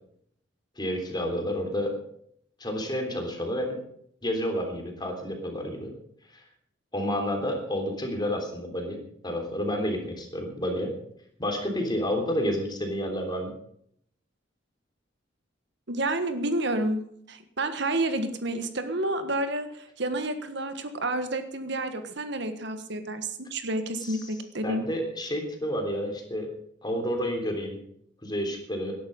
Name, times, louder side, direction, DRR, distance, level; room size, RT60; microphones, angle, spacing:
voice 1, 0.8-2.0 2.6-3.8 4.2-5.9 6.3-6.4 6.9-9.0 9.2-10.9 11.4-13.5 24.0-24.3 24.6-26.5 26.8-27.8 28.2-28.9, equal, 25° left, 3 dB, 3.5 m, -30 dB
voice 2, 15.9-17.0 17.3-24.9, right 1 dB, 65° right, 8 dB, 1.5 m, -30 dB
18.0 x 11.0 x 5.4 m, 0.69 s
head